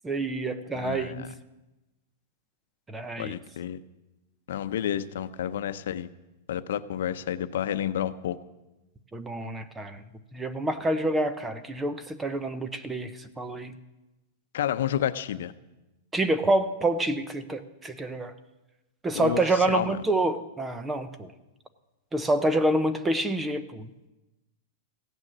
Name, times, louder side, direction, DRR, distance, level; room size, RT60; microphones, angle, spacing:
voice 1, 0.0-1.3 2.9-3.4 9.1-10.0 10.3-13.8 16.1-18.3 19.0-21.3 22.1-23.9, right 2 dB, 10° right, 12 dB, 0.6 m, -27 dB
voice 2, 0.7-1.3 3.2-3.8 4.5-6.1 6.5-8.4 14.5-15.5 19.1-20.0, left 10 dB, 75° left, 12 dB, 0.7 m, -30 dB
16.0 x 9.4 x 7.4 m, 1.0 s
supercardioid pair, 165°, 0 cm